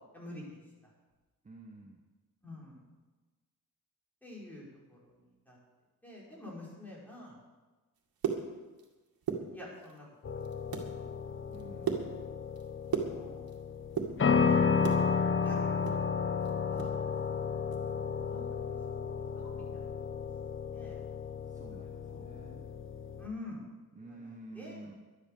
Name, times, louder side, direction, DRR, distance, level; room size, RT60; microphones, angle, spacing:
voice 1, 0.1-0.9 2.4-2.8 4.2-5.1 5.5-5.6 6.0-7.4 9.5-10.6 10.9-11.1 11.9-12.1 13.0-13.6 14.3-15.0 15.4-16.2 16.7-16.9 17.9-18.7 19.3-20.1 20.7-21.0 21.8-22.3 23.2-24.9, left 1 dB, 5° left, -5 dB, 5.5 m, -48 dB
voice 2, 1.4-2.0 11.5-12.0 21.5-22.7 23.9-24.9, right 2 dB, 20° right, 1 dB, 1.3 m, -50 dB
sound 1, 8.0-8.9 9.2-10.0 10.4-10.9 11.3-13.6 13.9-15.0 15.4-17.0 17.2-17.3 17.7-17.9 18.3-18.5, right 7 dB, 85° right, 2.1 m, -36 dB
sound 2, 10.2-23.3, left 5 dB, 35° left, 0.9 m, -32 dB
12.0 x 11.5 x 6.9 m, 1.2 s
wide cardioid pair, 115°, 35 cm